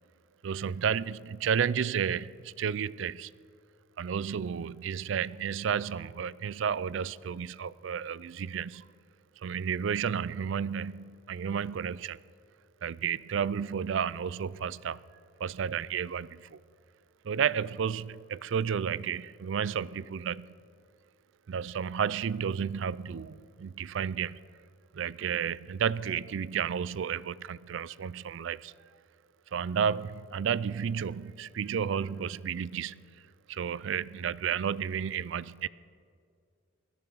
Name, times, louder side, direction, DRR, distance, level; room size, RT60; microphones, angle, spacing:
voice 1, 0.4-3.3 4.0-8.8 9.4-12.2 12.8-15.0 15.4-16.6 17.2-20.5 21.5-24.4 24.9-28.7 29.5-33.0 33.5-35.7, right 7 dB, 60° right, 0.4 m, -32 dB
20.5 x 17.0 x 4.0 m
head